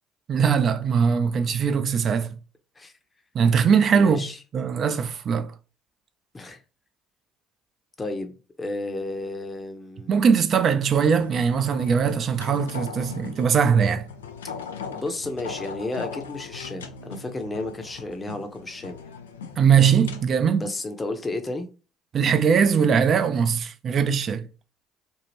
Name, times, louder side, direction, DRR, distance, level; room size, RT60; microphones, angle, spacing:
voice 1, 0.3-2.3 3.3-4.2 4.5-5.5 10.1-14.0 19.6-20.7 22.1-24.4, right 6 dB, 50° right, 0.4 m, -21 dB
voice 2, 3.9-4.4 6.3-6.6 8.0-10.2 14.9-19.1 20.6-21.7, left 2 dB, 25° left, 0.8 m, -32 dB
sound 1, 10.9-20.3, left 6 dB, 90° left, 0.3 m, -39 dB
2.7 x 2.4 x 3.2 m
hypercardioid pair, 60°, 0 cm